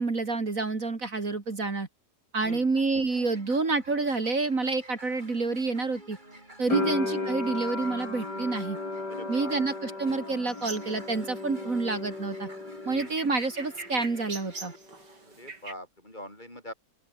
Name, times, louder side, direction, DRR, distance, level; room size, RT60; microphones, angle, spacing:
voice 1, 0.0-1.9 2.3-6.2 6.6-8.8 9.3-12.5 12.8-14.7, right 3 dB, 50° right, 3.1 m, -28 dB
voice 2, 2.4-2.7 6.7-6.9 9.1-9.5 12.9-13.1 15.2-16.7, left 1 dB, 25° left, 7.1 m, -43 dB
sound 1, 2.8-14.8, right 1 dB, 25° right, 7.1 m, -50 dB
sound 2, 6.7-13.5 13.8-14.6, left 3 dB, 80° left, 5.8 m, -34 dB
sound 3, 10.5-15.7, right 3 dB, 85° right, 4.6 m, -44 dB
open air
omnidirectional pair, 1.8 m